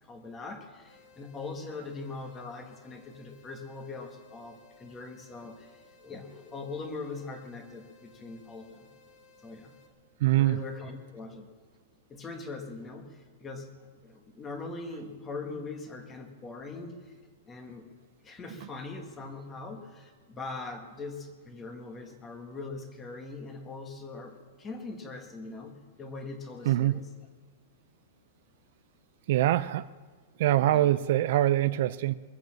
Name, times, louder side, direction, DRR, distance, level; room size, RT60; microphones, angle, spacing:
voice 1, 0.0-8.9 9.4-9.7 10.3-11.5 12.1-17.2 17.5-17.9 18.2-27.1 30.7-30.9, left 3 dB, 10° left, 4 dB, 1.3 m, -41 dB
sound 1, 0.9-9.9, left 4 dB, 45° left, 2.2 m, -59 dB
voice 2, 10.2-10.6 26.7-27.0 29.3-29.9 30.4-32.1, right 14 dB, 45° right, 14 dB, 0.3 m, -24 dB
22.0 x 7.9 x 7.5 m, 1.5 s
supercardioid pair, 180°, 0 cm